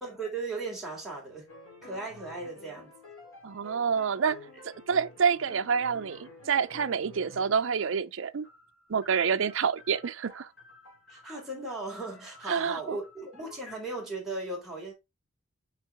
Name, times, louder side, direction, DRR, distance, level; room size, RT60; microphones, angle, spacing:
voice 1, 0.0-1.5 1.8-2.9 11.1-14.9, right 2 dB, ahead, 3.2 m, -37 dB
sound 1, 1.5-7.8 8.4-13.7, left 2 dB, 70° left, 2.9 m, -51 dB
voice 2, 3.4-4.4 4.9-8.5 8.9-10.5 12.5-13.0, right 6 dB, 60° right, 0.5 m, -27 dB
6.0 x 4.6 x 3.5 m
head